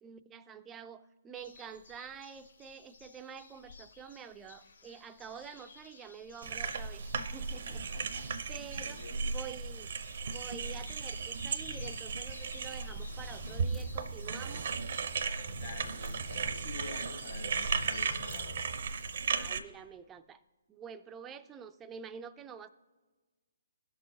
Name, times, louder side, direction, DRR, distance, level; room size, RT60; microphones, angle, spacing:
voice 1, 0.0-8.2 8.5-9.9 10.2-14.7 19.3-20.4 20.7-22.7, right 7 dB, 15° right, 10 dB, 0.4 m, -48 dB
sound 1, 1.3-18.4, left 4 dB, 70° left, 2.4 m, -55 dB
sound 2, 6.4-19.6, right 5 dB, 55° right, 0.6 m, -36 dB
voice 2, 7.7-9.2 15.5-18.7, left 4 dB, 50° left, 1 dB, 2.1 m, -48 dB
sound 3, 11.6-12.1 13.2-14.1 15.5-16.6 17.7-18.7, left 5 dB, 30° left, 0.9 m, -48 dB
17.0 x 6.4 x 2.8 m, 1.3 s
figure-of-eight pair, 135°, 0 cm